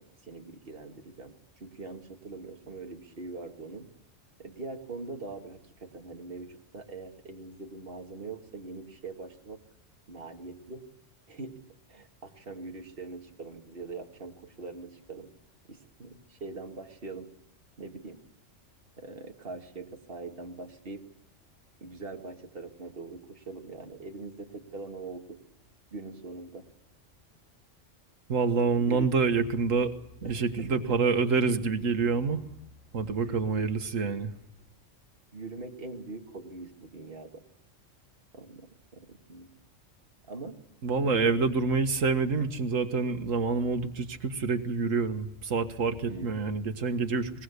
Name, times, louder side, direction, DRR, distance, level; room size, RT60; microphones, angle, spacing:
voice 1, 0.0-1.3 1.6-3.9 4.4-9.6 10.1-10.8 11.3-11.6 11.9-15.3 15.7-17.3 17.8-18.2 19.0-21.0 21.8-25.4 25.9-26.7 28.8-29.1 30.2-31.0 33.2-33.7 35.3-37.4 38.3-39.5 40.3-40.6 41.0-41.3 46.1-46.8, right 3 dB, 45° right, 4 dB, 2.2 m, -42 dB
voice 2, 28.3-29.9 30.2-32.4 32.9-34.3 40.8-47.3, right 4 dB, 85° right, 8 dB, 1.9 m, -27 dB
22.5 x 20.5 x 8.3 m, 0.77 s
omnidirectional pair, 1.3 m